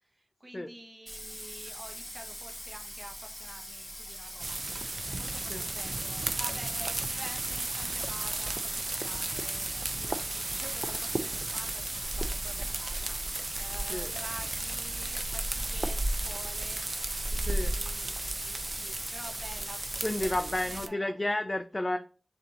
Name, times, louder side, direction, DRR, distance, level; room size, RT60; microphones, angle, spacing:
voice 1, 0.0-17.0 17.3-21.1, right 1 dB, 30° right, 4 dB, 1.0 m, -49 dB
Bathtub (filling or washing), 1.1-20.3, equal, 5° left, 1.2 m, -43 dB
sound 1, 4.4-20.9, right 2 dB, 55° right, 0.5 m, -34 dB
voice 2, 20.0-22.0, left 1 dB, 30° left, 6 dB, 0.4 m, -31 dB
6.6 x 2.6 x 3.0 m, 0.35 s
wide cardioid pair, 75°, 0 cm